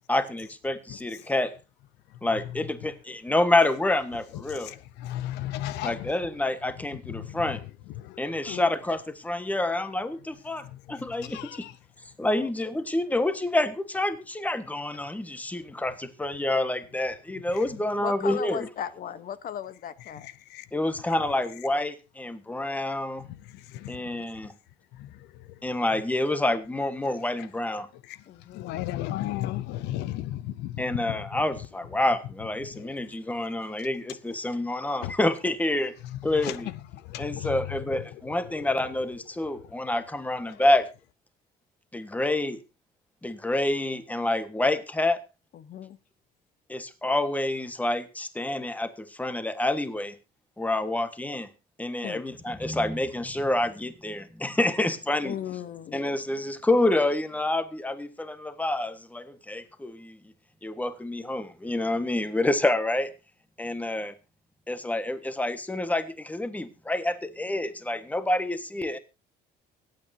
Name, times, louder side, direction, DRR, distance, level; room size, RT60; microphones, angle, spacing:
voice 1, 0.1-1.6 2.2-4.7 5.8-7.6 8.2-11.7 12.2-18.7 20.7-23.3 23.9-24.5 25.6-27.9 30.8-36.0 36.2-36.7 37.2-40.9 41.9-42.6 43.2-45.2 46.7-50.2 50.6-51.5 51.8-55.3 55.9-60.2 60.6-63.1 63.6-64.1 64.7-69.0, left 1 dB, 10° left, 1.4 m, -28 dB
voice 2, 4.6-6.1 7.2-7.4 8.0-8.2 8.5-8.7 11.2-11.7 20.5-20.6 23.7-24.0 25.0-25.1 28.1-28.2 28.5-31.1 32.7-32.9 35.0-35.1 36.4-36.6 37.1-37.6, left 14 dB, 90° left, 0.6 m, -34 dB
voice 3, 18.0-20.3 28.3-28.8 45.5-46.0 52.0-52.2 55.2-56.0, left 9 dB, 55° left, 1.0 m, -36 dB
24.5 x 8.8 x 2.7 m
cardioid pair, 110°, 17 cm